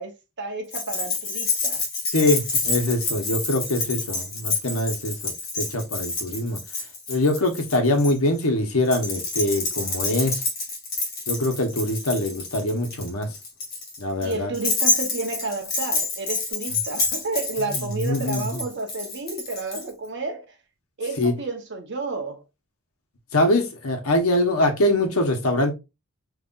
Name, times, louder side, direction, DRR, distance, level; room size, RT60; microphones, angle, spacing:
voice 1, 0.0-1.8 14.2-20.5 21.0-22.4, right 3 dB, 55° right, 1.0 m, -31 dB
Keys jangling, 0.7-8.1 8.9-19.8, left 3 dB, 45° left, 1.9 m, -28 dB
voice 2, 2.1-6.6 7.1-10.4 11.3-13.3 14.0-14.5 17.7-18.6 21.2-21.3 23.3-25.7, left 1 dB, 80° left, 1.1 m, -23 dB
5.4 x 3.3 x 2.5 m
head